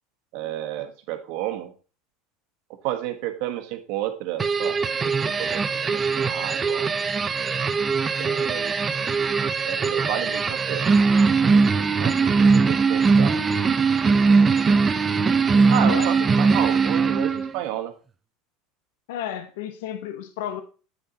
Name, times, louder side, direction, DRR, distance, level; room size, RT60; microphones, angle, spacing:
voice 1, 0.3-1.7 2.8-4.8 5.0-6.9 8.2-8.7 9.7-11.1 12.0-13.4 15.7-17.9, right 12 dB, 65° right, 1.2 m, -31 dB
sound 1, 4.4-17.6, right 4 dB, 25° right, 0.6 m, -21 dB
voice 2, 15.7-16.3 19.1-20.6, left 9 dB, 75° left, 0.9 m, -33 dB
8.7 x 6.7 x 2.9 m
supercardioid pair, 105°, 0 cm